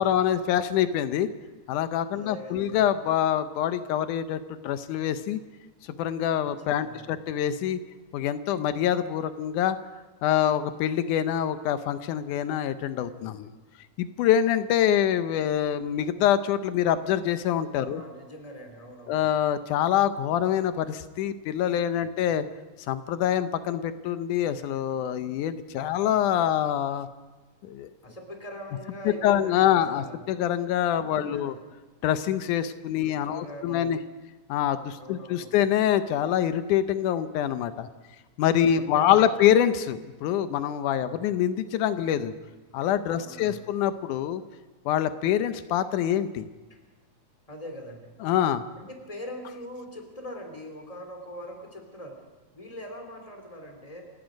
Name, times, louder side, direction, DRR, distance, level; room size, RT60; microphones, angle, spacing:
voice 1, 0.0-1.3 1.7-5.4 6.0-7.8 8.1-9.8 10.2-13.5 14.0-18.0 19.1-22.5 22.9-27.1 27.6-27.9 29.2-31.6 32.0-34.0 34.5-37.9 38.4-42.3 42.7-44.4 44.9-46.5 48.2-48.6, left 10 dB, 90° left, 11 dB, 2.3 m, -25 dB
voice 2, 2.1-2.8 6.5-7.1 17.8-19.2 22.1-22.2 25.8-26.2 28.0-30.2 31.0-31.6 33.0-34.0 35.0-35.5 38.7-39.4 41.0-41.2 43.1-43.7 46.7-46.8 47.5-48.1 48.8-52.2 52.5-54.0, equal, 10° left, 4 dB, 3.1 m, -42 dB
29.0 x 17.0 x 5.3 m, 1.2 s
omnidirectional pair, 3.5 m